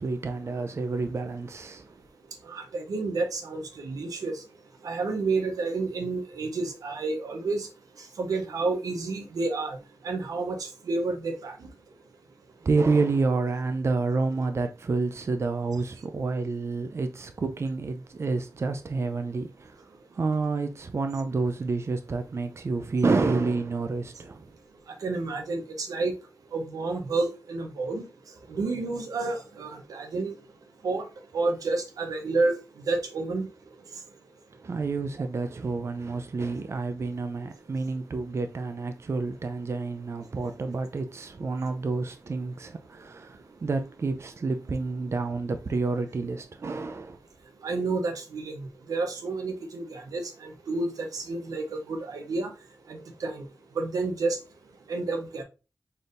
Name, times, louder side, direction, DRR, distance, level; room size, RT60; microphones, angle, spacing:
voice 1, 0.0-1.9 12.7-19.9 20.1-24.4 34.6-47.2, right 3 dB, 50° right, 0.4 m, -29 dB
voice 2, 2.4-4.4 4.8-7.7 8.0-9.8 10.0-11.7 25.0-26.1 26.5-28.1 28.5-30.3 30.8-31.1 31.3-33.5 47.6-52.5 52.9-53.5 53.7-54.4 54.9-55.4, right 3 dB, 90° right, 0.8 m, -30 dB
4.3 x 3.4 x 2.5 m
cardioid pair, 55°, 6 cm